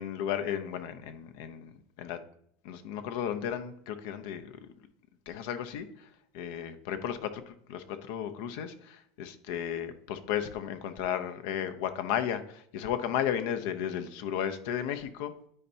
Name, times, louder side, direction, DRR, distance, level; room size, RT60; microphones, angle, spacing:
voice 1, 0.0-1.7 2.0-2.2 2.6-4.7 5.3-6.1 6.3-15.3, left 9 dB, 70° left, 9 dB, 0.7 m, -34 dB
9.9 x 4.4 x 2.7 m, 0.68 s
supercardioid pair, 110°, 0 cm